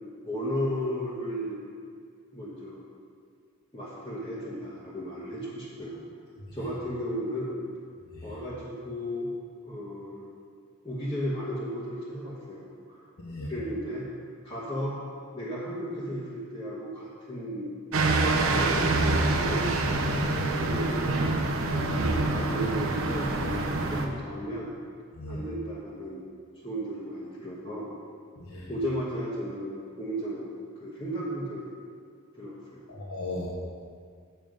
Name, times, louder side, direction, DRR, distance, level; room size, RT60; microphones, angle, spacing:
voice 1, 0.2-1.6 2.3-2.8 3.7-6.0 6.5-7.6 8.2-9.3 9.7-10.3 10.8-13.0 13.5-14.0 14.4-15.0 15.3-17.7 18.5-19.9 20.5-21.2 21.7-23.6 23.9-24.7 25.3-26.3 26.6-27.9 28.7-30.4 30.8-31.7 32.4-32.8, equal, 20° left, -9 dB, 1.2 m, -34 dB
voice 2, 13.2-13.5 20.3-20.5 21.6-21.8 25.2-25.4 28.5-28.7 32.9-33.5, left 2 dB, 85° left, -4 dB, 1.2 m, -37 dB
sound 1, 17.9-24.1, right 2 dB, 80° right, 0.8 m, -26 dB
7.8 x 6.8 x 5.2 m, 2.1 s
head